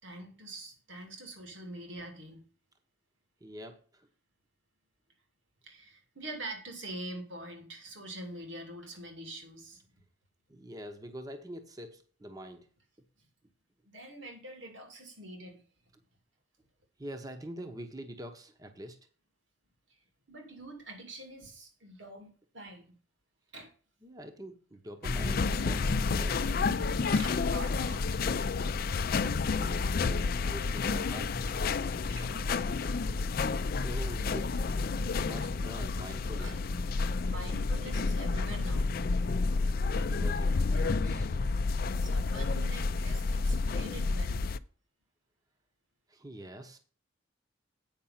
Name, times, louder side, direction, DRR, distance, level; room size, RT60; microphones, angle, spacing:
voice 1, 0.0-2.4 5.6-9.8 13.8-15.6 20.3-22.9 23.5-23.7 27.2-28.1 32.1-32.9 36.4-36.6 37.2-38.9 40.7-40.8 42.0-44.4, right 1 dB, 75° right, 4 dB, 2.4 m, -45 dB
voice 2, 3.4-4.1 10.5-12.7 17.0-19.0 24.0-26.6 29.5-31.4 33.8-34.6 35.2-36.6 39.8-41.3 46.1-46.8, right 1 dB, 20° right, 7 dB, 0.9 m, -45 dB
sound 1, 25.0-44.6, left 4 dB, 50° left, 0.4 m, -30 dB
8.9 x 5.4 x 5.6 m, 0.41 s
head